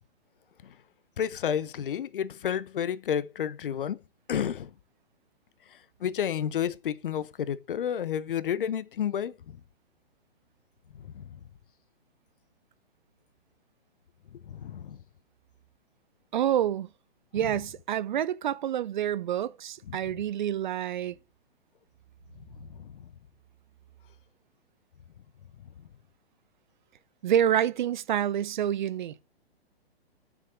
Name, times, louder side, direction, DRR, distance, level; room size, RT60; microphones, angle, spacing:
voice 1, 1.2-4.0 4.3-4.7 5.7-9.6 10.9-11.4 14.3-15.0 19.9-20.0 22.5-23.1, left 9 dB, 55° left, 0.9 m, -31 dB
voice 2, 16.3-16.9 17.3-21.2 27.2-29.2, right 10 dB, 50° right, 0.7 m, -27 dB
7.3 x 6.5 x 6.2 m
figure-of-eight pair, 120°, 32 cm